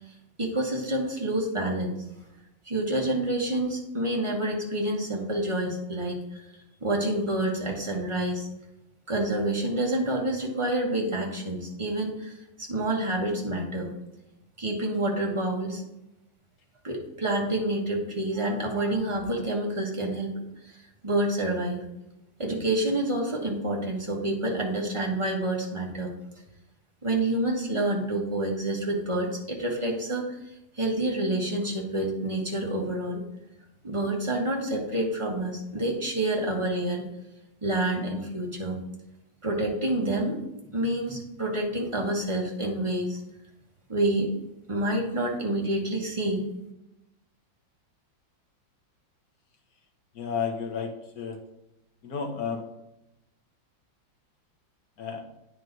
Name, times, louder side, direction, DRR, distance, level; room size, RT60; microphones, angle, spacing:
voice 1, 0.4-2.0 2.7-6.4 6.8-8.5 9.1-13.9 14.6-15.8 16.8-20.3 20.6-20.7 21.0-21.8 22.4-26.1 27.0-30.2 30.8-33.2 33.8-37.0 37.6-38.8 39.4-40.4 40.7-43.2 43.9-44.3 44.7-46.5, right 1 dB, 20° right, -1 dB, 0.9 m, -28 dB
voice 2, 50.1-51.4 52.0-52.6 55.0-55.2, left 6 dB, 55° left, 3 dB, 1.3 m, -32 dB
9.1 x 4.7 x 3.9 m, 0.91 s
omnidirectional pair, 2.1 m